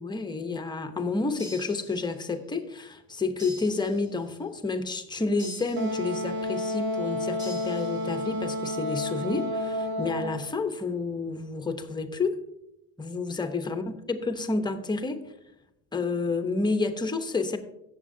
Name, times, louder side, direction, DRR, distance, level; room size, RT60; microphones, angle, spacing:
voice 1, 0.0-12.4 13.0-15.2 15.9-17.6, left 3 dB, 10° left, 7 dB, 0.8 m, -30 dB
sound 1, 1.4-2.5 3.4-4.4 5.4-6.4 7.4-8.4, left 1 dB, 10° right, 2.1 m, -47 dB
Wind instrument woodwind instrument, 5.8-10.5, left 1 dB, 80° right, 1.4 m, -31 dB
16.0 x 7.3 x 2.7 m, 0.85 s
supercardioid pair, 125°, 36 cm